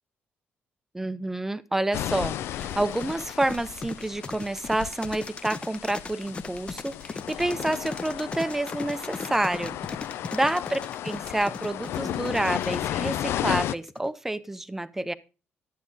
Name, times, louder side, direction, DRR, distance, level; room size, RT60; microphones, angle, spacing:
voice 1, 0.9-9.8 10.3-15.1, right 1 dB, 10° right, 0.7 m, -28 dB
sound 1, 1.9-13.7, left 12 dB, 80° left, 0.4 m, -34 dB
sound 2, 2.6-14.1, left 4 dB, 25° left, 0.7 m, -38 dB
11.5 x 8.4 x 3.9 m
cardioid pair, 130°, 4 cm